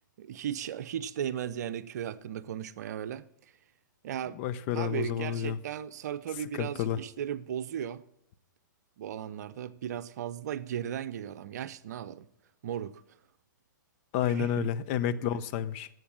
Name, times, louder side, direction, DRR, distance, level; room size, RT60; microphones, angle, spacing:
voice 1, 0.2-3.2 4.0-4.4 4.7-8.0 9.0-12.3 12.6-13.0 14.3-14.7, right 9 dB, 55° right, 0.7 m, -36 dB
voice 2, 4.3-5.6 6.5-7.0 14.1-15.9, left 9 dB, 40° left, 0.8 m, -30 dB
11.5 x 8.0 x 8.6 m
hypercardioid pair, 125°, 11 cm